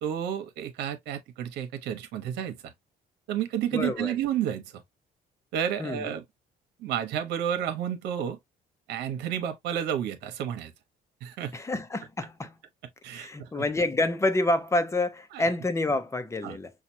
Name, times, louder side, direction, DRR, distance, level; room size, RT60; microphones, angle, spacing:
voice 1, 0.0-2.7 3.3-4.8 5.5-6.2 6.8-8.4 8.9-10.7 11.2-11.5 13.0-13.6 15.3-15.4 16.4-16.6, right 9 dB, 85° right, 1.1 m, -31 dB
voice 2, 3.7-4.1 5.8-6.0 11.5-12.6 13.1-16.7, left 2 dB, 15° left, 0.8 m, -28 dB
5.8 x 2.5 x 2.7 m
cardioid pair, 110°, 17 cm